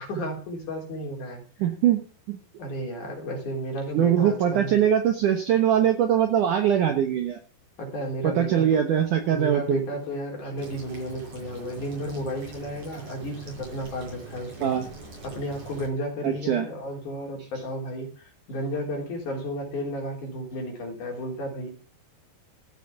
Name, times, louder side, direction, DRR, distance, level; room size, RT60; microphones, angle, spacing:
voice 1, 0.0-1.7 2.6-4.7 7.8-8.8 9.3-14.7 15.2-21.7, equal, 45° left, 2 dB, 4.7 m, -33 dB
voice 2, 1.6-2.0 2.3-2.4 3.9-7.4 8.2-9.8 14.6-14.9 16.2-16.7, right 9 dB, 65° right, 7 dB, 2.1 m, -22 dB
sound 1, 10.6-15.9, right 3 dB, 45° right, 6.8 m, -43 dB
15.0 x 8.0 x 7.0 m, 0.40 s
omnidirectional pair, 5.0 m